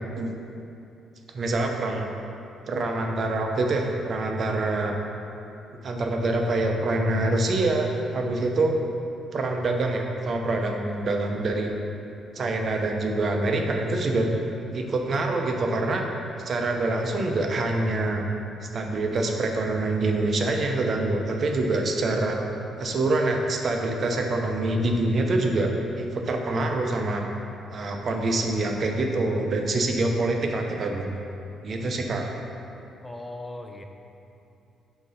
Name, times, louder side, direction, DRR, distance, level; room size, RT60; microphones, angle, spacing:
voice 1, 1.3-2.1 2.7-4.9 5.8-8.8 9.3-11.7 12.3-14.3 14.7-16.0 16.4-18.3 18.7-22.4 22.8-25.7 26.0-27.2 27.7-31.1 31.6-32.3, right 2 dB, 50° right, 2 dB, 0.7 m, -25 dB
voice 2, 33.0-33.8, left 2 dB, 10° left, 4 dB, 0.6 m, -38 dB
6.0 x 3.8 x 5.4 m, 2.7 s
cardioid pair, 90°, 0 cm